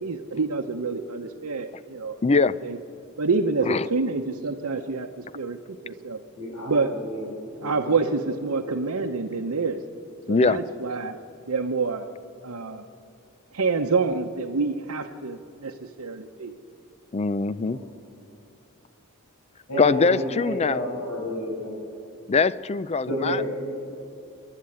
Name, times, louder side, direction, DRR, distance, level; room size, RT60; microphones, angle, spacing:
voice 1, 0.0-2.2 2.6-2.8 3.2-5.1 5.3-5.6 5.8-6.2 6.6-7.0 7.6-9.8 10.3-11.2 11.5-12.0 12.4-12.8 13.5-16.5, right 4 dB, 75° right, 2 dB, 0.9 m, -27 dB
voice 2, 2.2-2.6 3.6-3.9 10.3-10.6 17.1-17.8 19.8-20.8 22.3-23.4, left 4 dB, 30° left, 16 dB, 0.4 m, -22 dB
voice 3, 6.4-8.1 17.7-17.9 19.7-21.8 23.1-23.5, left 1 dB, 90° left, -4 dB, 6.9 m, -31 dB
28.0 x 11.0 x 8.6 m, 2.6 s
head